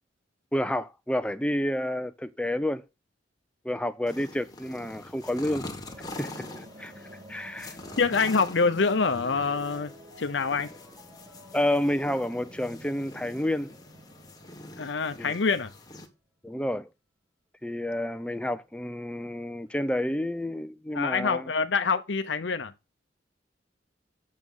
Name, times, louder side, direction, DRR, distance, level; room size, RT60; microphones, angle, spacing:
voice 1, 0.5-2.8 3.6-5.7 6.2-6.9 7.3-7.8 11.5-13.7 15.2-15.4 16.4-16.9 17.6-21.5, left 1 dB, 5° left, 0.6 m, -29 dB
sound 1, 4.1-16.1, left 2 dB, 20° left, 1.8 m, -45 dB
sound 2, 5.8-16.0, equal, 35° right, 1.8 m, -51 dB
sound 3, 6.8-12.4 13.1-13.6 14.8-14.9 15.6-15.9 18.0-18.7 19.3-19.4 19.7-19.8, left 2 dB, 10° right, 2.2 m, -52 dB
voice 2, 8.0-10.7 14.8-15.7 20.9-22.7, left 4 dB, 70° left, 0.7 m, -26 dB
8.3 x 6.4 x 5.5 m
head